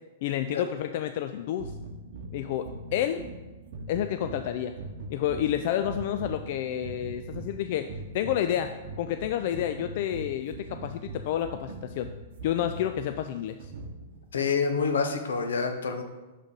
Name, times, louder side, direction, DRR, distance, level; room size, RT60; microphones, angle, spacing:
voice 1, 0.2-1.7 2.3-3.2 3.9-4.8 5.1-7.9 8.1-12.1 12.4-13.7, left 11 dB, 55° left, 8 dB, 0.3 m, -30 dB
sound 1, 1.6-14.3, right 3 dB, 65° right, 0.8 m, -42 dB
voice 2, 14.3-16.0, left 5 dB, 85° left, 6 dB, 0.8 m, -27 dB
6.6 x 3.7 x 5.4 m, 1.2 s
hypercardioid pair, 130°, 0 cm